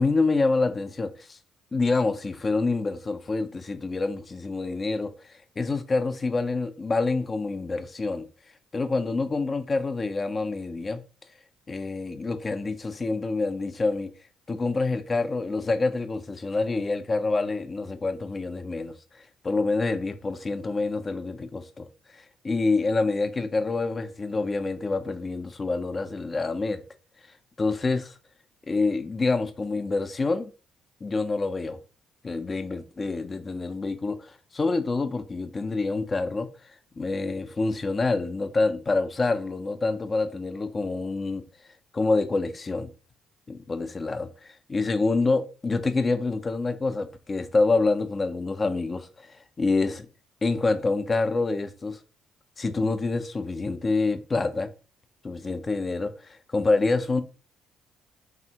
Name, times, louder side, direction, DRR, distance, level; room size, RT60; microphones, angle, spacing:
voice 1, 0.0-1.4 1.7-8.3 8.7-11.0 11.7-14.1 14.5-21.9 22.1-26.8 27.6-28.2 28.7-30.5 31.0-31.8 32.2-36.5 37.0-41.4 41.9-42.9 43.5-50.1 50.4-52.0 52.6-54.7 55.2-57.2, left 3 dB, 35° left, 0.4 m, -27 dB
3.3 x 2.1 x 2.7 m
hypercardioid pair, 55°, 0 cm